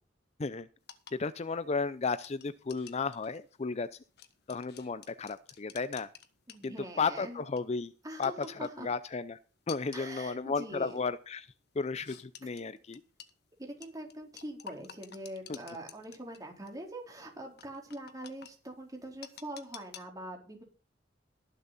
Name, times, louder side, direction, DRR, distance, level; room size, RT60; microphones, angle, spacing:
sound 1, 0.8-7.1 7.4-7.7 8.2-9.0 9.7-10.2 10.8-11.0 12.0-13.3 13.8-16.4 16.7-16.8 17.6-18.5 19.2-20.0, left 9 dB, 60° left, 1.4 m, -50 dB
voice 1, 1.1-3.9 4.5-6.1 6.6-7.9 8.2-9.4 9.7-11.5 11.8-13.0 15.5-15.6, left 4 dB, 35° left, 15 dB, 0.5 m, -34 dB
voice 2, 6.5-7.4 8.0-8.3 8.6-8.9 9.9-10.9 13.6-20.6, right 1 dB, 20° right, 1 dB, 4.0 m, -43 dB
21.5 x 7.4 x 4.1 m, 0.35 s
head